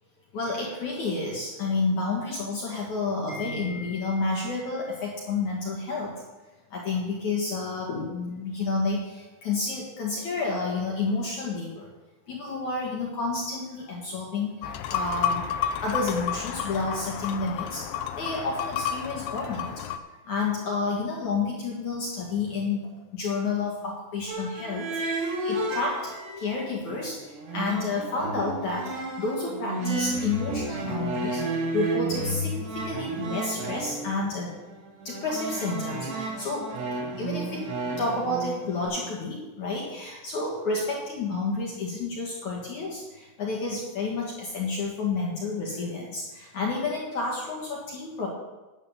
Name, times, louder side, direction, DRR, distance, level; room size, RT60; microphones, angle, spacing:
voice 1, 0.3-6.2 6.7-11.9 12.3-15.5 15.8-17.9 18.1-19.8 20.2-34.6 35.0-36.7 37.2-37.7 38.0-48.3, left 3 dB, 55° left, -3 dB, 2.3 m, -30 dB
sound 1, 14.6-20.0, left 8 dB, 80° left, 2.4 m, -31 dB
sound 2, 24.3-26.5 26.9-38.9, right 2 dB, 60° right, 4.4 m, -32 dB
11.0 x 8.7 x 7.0 m, 1.1 s
omnidirectional pair, 5.7 m